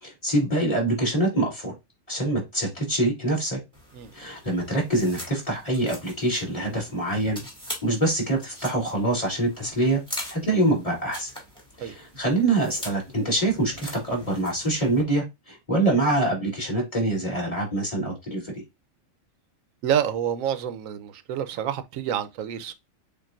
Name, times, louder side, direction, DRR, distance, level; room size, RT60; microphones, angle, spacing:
voice 1, 0.0-1.7 2.1-3.6 4.1-7.4 7.8-10.0 10.3-11.3 11.8-18.6, right 2 dB, 25° left, 2.6 m, -25 dB
sound 1, 3.7-15.0, equal, 5° left, 1.8 m, -42 dB
voice 2, 19.8-22.7, right 9 dB, 85° right, 1.0 m, -28 dB
6.9 x 2.6 x 2.4 m
omnidirectional pair, 1.4 m